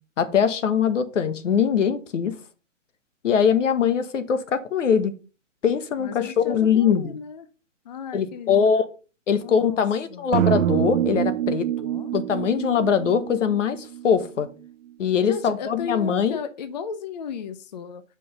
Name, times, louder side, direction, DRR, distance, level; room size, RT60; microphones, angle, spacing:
voice 1, 0.2-2.4 3.2-5.1 5.6-7.2 8.1-8.8 9.3-11.7 12.1-14.5 15.0-16.4, left 7 dB, 70° left, 1.2 m, -22 dB
voice 2, 6.0-7.5 7.8-8.7 9.4-9.8 10.1-10.4 11.8-12.1 15.2-18.0, left 6 dB, 35° left, 0.5 m, -35 dB
sound 1, 10.3-14.5, right 12 dB, 75° right, 0.6 m, -26 dB
5.8 x 5.2 x 6.7 m
hypercardioid pair, 160°, 38 cm